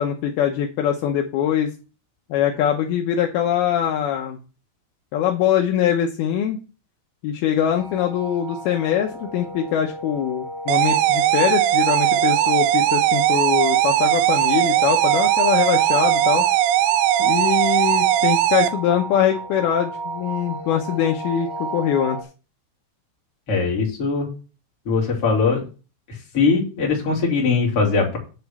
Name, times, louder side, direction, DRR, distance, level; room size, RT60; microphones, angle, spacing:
voice 1, 0.0-1.7 2.3-4.4 5.1-6.6 7.2-16.5 17.2-22.2, left 9 dB, 80° left, 2 dB, 2.2 m, -22 dB
sound 1, 7.8-22.2, right 2 dB, 15° right, 0.8 m, -32 dB
sound 2, 10.7-18.7, right 14 dB, 85° right, 2.5 m, -19 dB
voice 2, 23.5-24.3 24.8-25.6 26.3-28.2, left 4 dB, 35° left, -2 dB, 3.0 m, -20 dB
10.5 x 3.9 x 7.1 m, 0.34 s
omnidirectional pair, 5.7 m